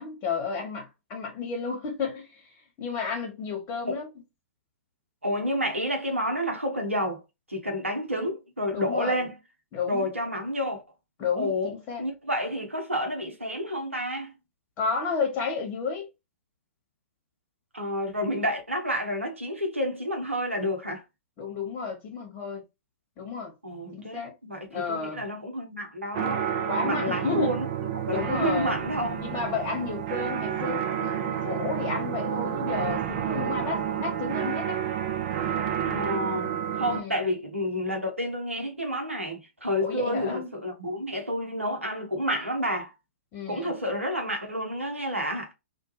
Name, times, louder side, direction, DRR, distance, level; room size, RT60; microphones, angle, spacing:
voice 1, 0.0-4.1 8.7-9.3 9.7-10.0 11.2-12.0 14.8-16.1 21.4-22.6 23.2-23.5 23.9-24.3 24.7-25.2 26.7-27.5 28.1-28.7 29.2-34.8 36.9-37.3 39.8-40.5 43.3-43.7, left 5 dB, 30° left, 1.0 m, -32 dB
voice 2, 5.2-7.2 7.5-9.4 9.9-10.8 11.4-14.3 17.7-21.0 23.6-26.5 26.8-29.2 35.8-42.9 43.5-45.5, equal, 90° right, 0.7 m, -30 dB
sound 1, 26.1-37.0, right 9 dB, 40° right, 0.5 m, -30 dB
2.2 x 2.2 x 2.9 m
figure-of-eight pair, 115°, 7 cm